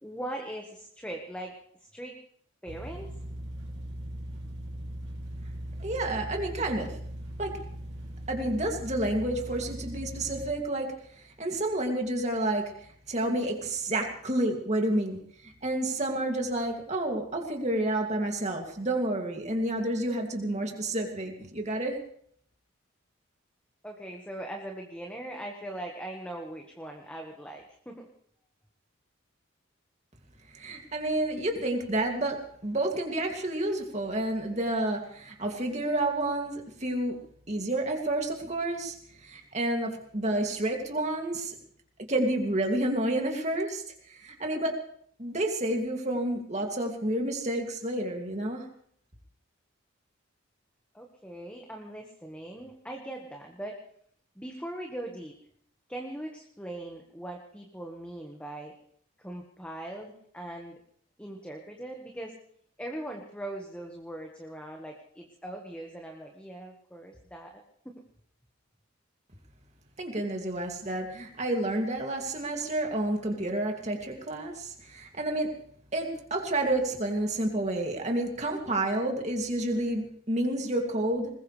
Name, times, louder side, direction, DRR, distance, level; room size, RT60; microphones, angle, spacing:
voice 1, 0.0-1.5 1.8-2.1 2.6-3.1 23.8-28.1 50.9-53.7 54.3-55.3 55.9-58.7 59.2-60.7 61.2-62.3 62.8-67.6 67.8-67.9, right 1 dB, 5° left, 1 dB, 1.4 m, -40 dB
sound 1, 2.7-10.5, right 1 dB, 55° right, 2.7 m, -39 dB
voice 2, 5.8-7.0 7.4-7.5 8.3-12.6 13.1-22.0 30.5-37.2 37.5-38.9 39.2-41.5 42.0-44.7 45.2-48.7 70.0-75.5 75.9-81.3, right 1 dB, 35° right, 2 dB, 2.5 m, -30 dB
21.0 x 20.5 x 3.3 m, 0.63 s
head